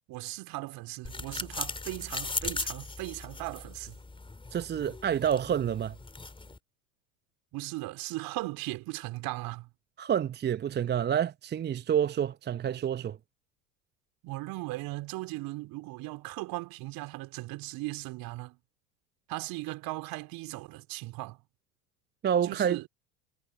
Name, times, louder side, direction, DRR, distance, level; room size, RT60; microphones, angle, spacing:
voice 1, 0.1-4.0 7.5-9.7 14.2-18.6 19.3-21.4 22.4-22.8, right 20 dB, 50° right, 3.4 m, -38 dB
sound 1, 1.1-6.6, left 3 dB, 10° left, 4.0 m, -38 dB
voice 2, 4.5-5.9 10.0-13.2 22.2-22.9, right 9 dB, 25° right, 0.8 m, -28 dB
figure-of-eight pair, 80°, 45 cm